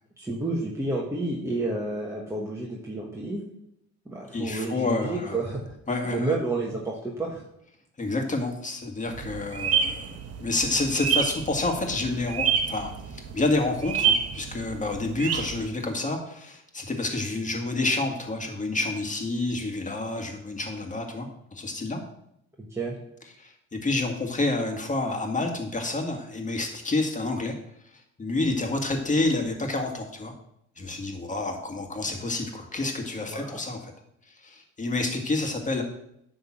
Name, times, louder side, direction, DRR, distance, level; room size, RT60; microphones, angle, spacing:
voice 1, 0.2-3.4 4.0-5.6 6.1-7.4 22.6-22.9 33.3-33.5, right 2 dB, 10° right, -3 dB, 1.5 m, -30 dB
voice 2, 4.3-5.4 5.9-6.3 8.0-10.1 10.4-22.0 23.4-27.5 28.2-30.3 30.8-33.9 34.4-35.8, left 2 dB, 25° left, 4 dB, 1.9 m, -29 dB
sound 1, 9.1-15.7, right 7 dB, 55° right, 1.2 m, -29 dB
10.5 x 3.8 x 7.3 m, 0.77 s
cardioid pair, 105°, 30 cm